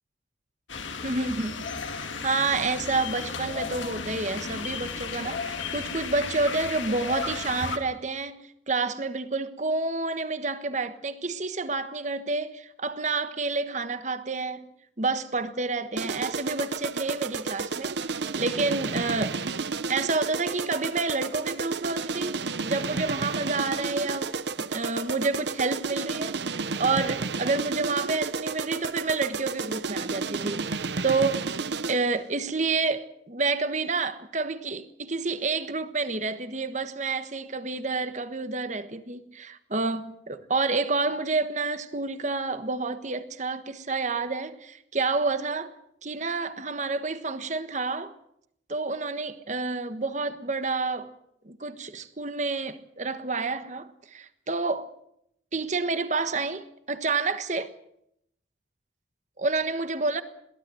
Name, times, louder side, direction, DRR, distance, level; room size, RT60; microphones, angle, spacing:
sound 1, 0.7-7.8, left 5 dB, 80° left, 2.2 m, -34 dB
voice 1, 1.0-1.6 1.9-14.6 15.0-19.5 19.9-31.5 31.9-45.7 46.0-48.1 48.7-51.1 51.4-54.9 55.5-57.7 59.4-60.2, right 3 dB, 40° right, 1.3 m, -29 dB
sound 2, 16.0-32.1, right 4 dB, 60° right, 0.8 m, -32 dB
22.0 x 17.0 x 7.8 m
head